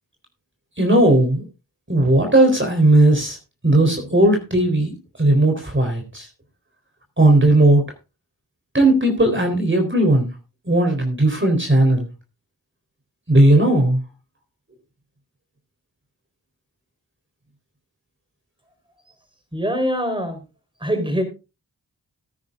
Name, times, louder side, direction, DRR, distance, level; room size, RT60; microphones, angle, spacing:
voice 1, 0.8-1.4 1.9-3.4 3.6-6.3 7.2-7.8 8.7-10.3 10.7-12.1 13.3-14.0, right 1 dB, 30° right, 4 dB, 3.9 m, -16 dB
voice 2, 19.5-20.4 20.8-21.2, equal, 10° right, 8 dB, 4.2 m, -23 dB
18.5 x 9.7 x 2.5 m, 0.29 s
cardioid pair, 45°, 39 cm